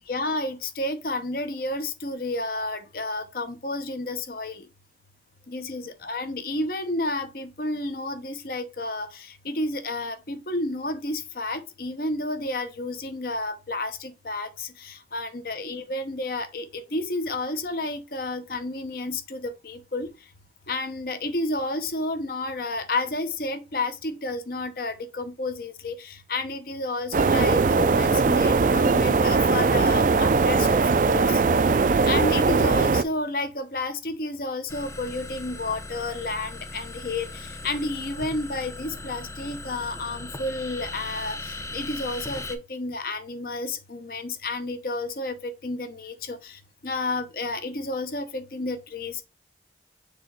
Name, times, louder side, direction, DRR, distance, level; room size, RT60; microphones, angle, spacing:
voice 1, 0.1-4.7 5.5-20.1 20.7-31.4 32.0-49.2, left 2 dB, 55° left, 0.9 m, -31 dB
sound 1, 27.1-33.0, right 4 dB, 45° right, 0.4 m, -20 dB
sound 2, 34.7-42.6, left 2 dB, 15° left, 0.6 m, -38 dB
6.7 x 3.0 x 5.2 m
head